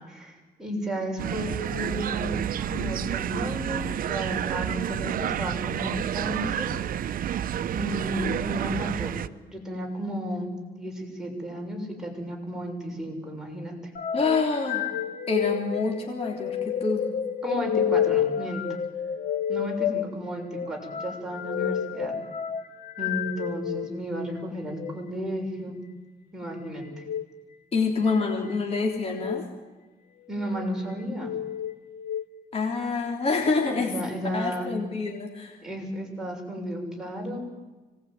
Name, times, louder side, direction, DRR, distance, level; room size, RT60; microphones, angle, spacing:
voice 1, 0.1-6.7 7.7-9.1 9.5-13.7 17.4-18.8 19.5-22.1 23.0-25.8 26.3-27.0 30.3-31.3 33.8-34.7 35.6-37.4, equal, 5° right, -1 dB, 6.8 m, -33 dB
sound 1, 1.2-9.3, right 10 dB, 60° right, 0.8 m, -29 dB
sound 2, 13.9-23.9 24.6-24.9 26.9-27.2 28.1-28.6 29.1-29.4 30.2-30.7 31.2-32.2, left 9 dB, 70° left, 1.8 m, -30 dB
voice 2, 14.1-14.9 15.3-17.1 27.7-29.5 32.5-34.0 34.3-35.6, left 4 dB, 40° left, 1 dB, 3.4 m, -27 dB
25.0 x 19.5 x 9.4 m, 1.3 s
cardioid pair, 135°, 16 cm